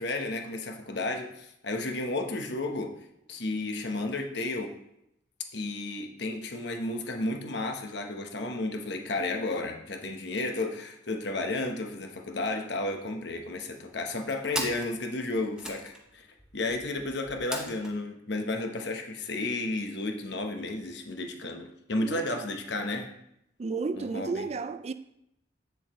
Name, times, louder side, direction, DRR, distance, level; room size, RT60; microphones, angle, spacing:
voice 1, 0.0-2.9 3.3-4.7 5.5-16.3 16.5-23.1 23.9-24.5, left 2 dB, 60° left, 1.0 m, -32 dB
sound 1, 11.7-12.0 12.3-12.4 12.6-13.3 13.9-18.0, right 1 dB, 5° right, 0.8 m, -39 dB
voice 2, 22.0-22.5 22.8-22.9 23.6-24.9, right 4 dB, 35° right, 0.3 m, -33 dB
8.1 x 7.1 x 3.1 m
head